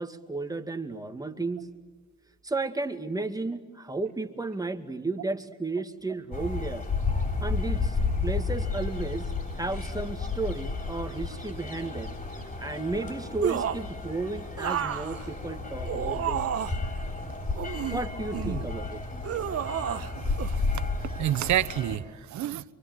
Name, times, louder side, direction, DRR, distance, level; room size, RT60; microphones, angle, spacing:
voice 1, 0.0-1.7 2.4-6.9 7.4-12.1 12.6-16.4 17.9-19.0, right 3 dB, 10° right, 2.3 m, -33 dB
sound 1, 6.3-22.0, left 3 dB, 30° left, 7.1 m, -32 dB
sound 2, 13.4-13.9 14.6-16.9 17.6-18.7 19.2-20.1 20.4-20.5, right 9 dB, 50° right, 1.1 m, -31 dB
voice 2, 20.0-22.6, right 12 dB, 70° right, 1.1 m, -30 dB
26.5 x 24.0 x 9.3 m
cardioid pair, 90°, 30 cm